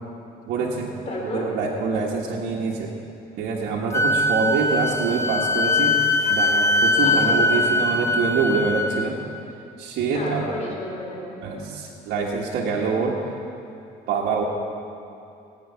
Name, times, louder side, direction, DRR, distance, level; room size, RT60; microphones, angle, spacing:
voice 1, 0.5-0.9 1.3-2.9 3.4-6.0 6.3-9.2 9.8-10.4 11.4-13.2 14.1-14.4, right 4 dB, 70° right, -5 dB, 1.7 m, -25 dB
voice 2, 1.1-1.5 7.0-7.7 10.1-11.4, left 1 dB, 40° left, -2 dB, 4.1 m, -32 dB
Wind instrument woodwind instrument, 3.9-9.1, left 2 dB, 15° left, 0.6 m, -21 dB
19.0 x 9.5 x 5.8 m, 2.6 s
cardioid pair, 110°, 17 cm